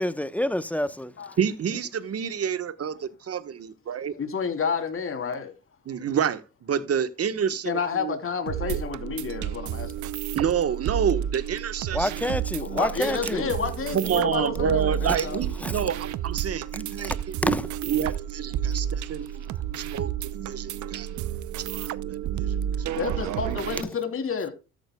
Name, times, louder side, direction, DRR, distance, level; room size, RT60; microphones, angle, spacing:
voice 1, 0.0-1.1 11.9-13.5 15.6-15.8 17.4-17.6 18.7-18.8, left 1 dB, 5° left, 1.0 m, -27 dB
voice 2, 1.4-4.1 5.9-8.1 8.7-8.8 10.3-12.3 13.9-17.6 17.8-19.5 19.7-20.1 20.5-21.1 21.6-22.8, right 8 dB, 50° right, 1.3 m, -28 dB
voice 3, 4.2-5.5 7.6-10.1 12.6-15.4 23.0-24.5, left 5 dB, 45° left, 3.3 m, -30 dB
sound 1, 8.5-23.8, right 10 dB, 75° right, 0.8 m, -31 dB
13.5 x 9.7 x 2.3 m
cardioid pair, 90°, 30 cm